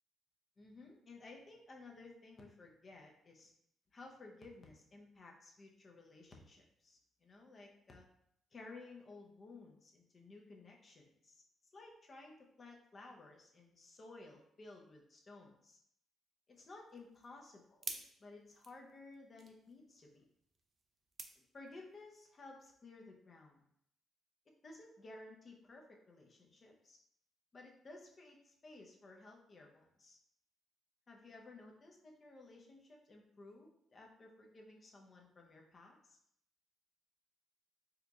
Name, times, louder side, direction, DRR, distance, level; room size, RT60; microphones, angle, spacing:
voice 1, 0.6-3.5 3.9-8.1 8.5-11.4 11.7-15.8 16.5-20.2 21.4-23.6 24.6-27.0 27.5-30.2 31.1-36.2, left 2 dB, 40° left, 0 dB, 0.7 m, -56 dB
sound 1, 16.5-22.1, right 4 dB, 40° right, 0.4 m, -53 dB
4.4 x 2.5 x 2.3 m, 0.72 s
cardioid pair, 90°, 0 cm